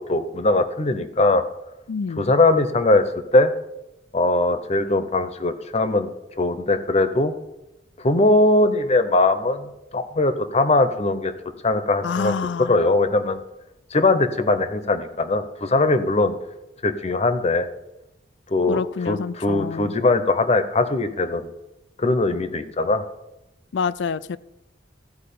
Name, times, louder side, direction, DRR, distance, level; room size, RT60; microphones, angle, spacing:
voice 1, 0.0-1.4 2.2-3.1 3.3-3.5 4.1-6.1 6.4-7.3 8.0-11.3 11.6-12.3 12.6-13.4 13.9-16.4 16.8-17.7 18.5-21.5 22.0-23.0, left 2 dB, 35° left, 11 dB, 0.8 m, -20 dB
voice 2, 1.9-2.3 12.0-12.8 18.7-19.9 23.7-24.4, left 5 dB, 70° left, 18 dB, 0.4 m, -27 dB
14.0 x 4.8 x 8.5 m, 0.92 s
head